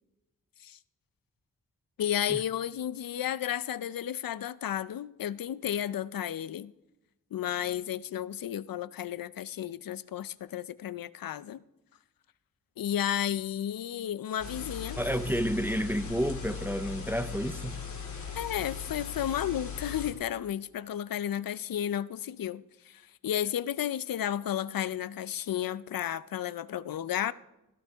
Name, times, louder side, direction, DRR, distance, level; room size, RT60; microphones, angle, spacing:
voice 1, 2.0-6.7 7.3-11.6 12.8-15.0 18.4-27.3, left 10 dB, 85° left, 0.5 m, -33 dB
sound 1, 14.4-20.1, left 6 dB, 60° left, 2.4 m, -39 dB
voice 2, 15.0-17.8, equal, 5° right, 0.5 m, -30 dB
17.0 x 13.5 x 3.5 m
wide cardioid pair, 155°, 34 cm